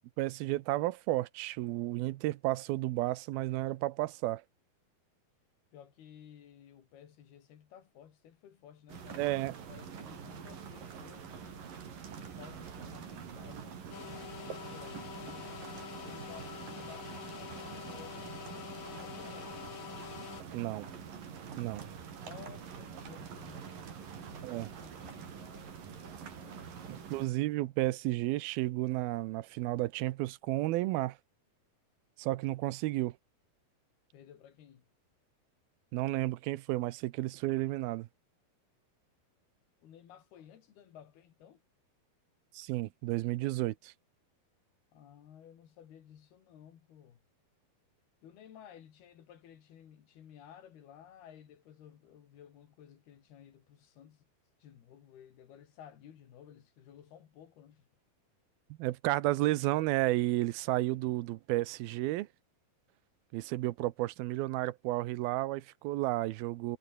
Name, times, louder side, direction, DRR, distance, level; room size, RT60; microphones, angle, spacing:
voice 1, 0.2-4.4 9.2-9.5 20.5-20.9 21.6-21.8 24.4-24.7 26.9-31.2 32.2-33.1 35.9-38.1 42.5-43.9 58.8-62.3 63.3-66.8, right 17 dB, 85° right, 2.6 m, -32 dB
voice 2, 5.7-11.7 12.2-15.6 16.0-20.0 20.6-21.0 22.2-27.3 34.1-34.9 39.8-41.6 44.9-47.2 48.2-54.2 54.6-57.9, left 9 dB, 80° left, 4.5 m, -55 dB
sound 1, 8.9-27.3, right 7 dB, 60° right, 5.0 m, -46 dB
sound 2, 13.9-20.4, left 8 dB, 50° left, 3.5 m, -46 dB
omnidirectional pair, 4.4 m